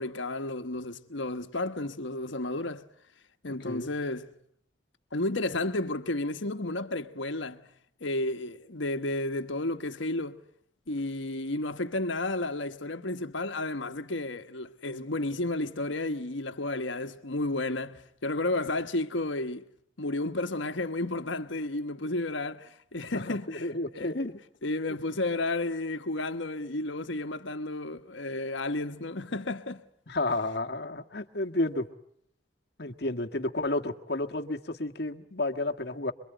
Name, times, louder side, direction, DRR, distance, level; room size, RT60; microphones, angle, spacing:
voice 1, 0.0-2.9 3.4-4.3 5.1-7.6 8.0-10.4 10.9-19.6 20.0-24.2 24.6-29.8, left 2 dB, 70° left, 1.3 m, -32 dB
voice 2, 23.1-24.3 24.9-25.0 30.1-31.9 32.8-36.1, left 2 dB, 55° left, 1.5 m, -31 dB
27.0 x 23.0 x 9.1 m
head